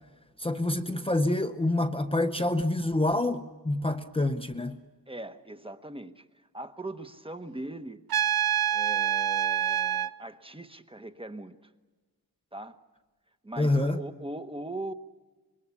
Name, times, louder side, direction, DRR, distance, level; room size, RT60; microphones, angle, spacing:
voice 1, 0.4-4.8 13.6-14.0, left 2 dB, 15° left, 0.8 m, -27 dB
voice 2, 5.1-6.3 6.5-8.0 8.7-11.6 12.5-12.8 13.4-14.9, right 1 dB, 15° right, 1.0 m, -40 dB
Trumpet, 8.1-10.1, right 10 dB, 70° right, 0.7 m, -26 dB
26.5 x 22.0 x 8.3 m
wide cardioid pair, 160°, 37 cm